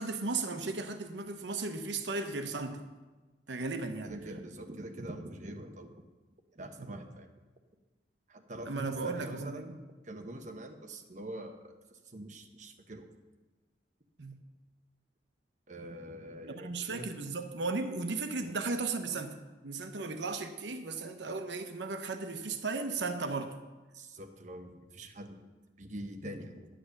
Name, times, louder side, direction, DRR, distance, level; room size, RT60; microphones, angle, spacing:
voice 1, 0.0-2.8 3.5-4.1 6.8-6.9 8.6-9.7 14.2-14.4 16.4-19.3 19.6-23.5, right 3 dB, 80° right, 8 dB, 1.0 m, -35 dB
voice 2, 4.0-5.9 6.5-7.3 8.3-9.8 10.0-11.6 12.1-13.1 15.7-17.2 18.3-18.5 23.9-25.4 25.8-26.7, right 1 dB, 45° right, 5 dB, 1.1 m, -44 dB
10.0 x 7.8 x 6.6 m, 1.2 s
head